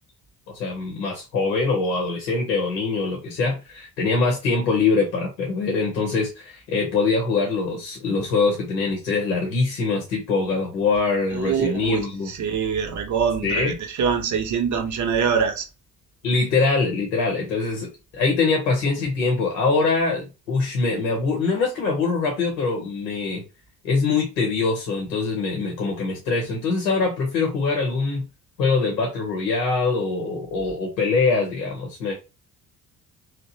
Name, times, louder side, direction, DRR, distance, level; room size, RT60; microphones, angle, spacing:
voice 1, 0.5-12.3 13.4-13.8 16.2-23.4 23.8-28.3 28.6-32.1, left 4 dB, 80° left, 0.7 m, -23 dB
voice 2, 11.3-12.0 12.4-13.7 14.0-15.6, right 7 dB, 35° right, 0.6 m, -23 dB
2.8 x 2.0 x 2.6 m
figure-of-eight pair, 45°, 50 cm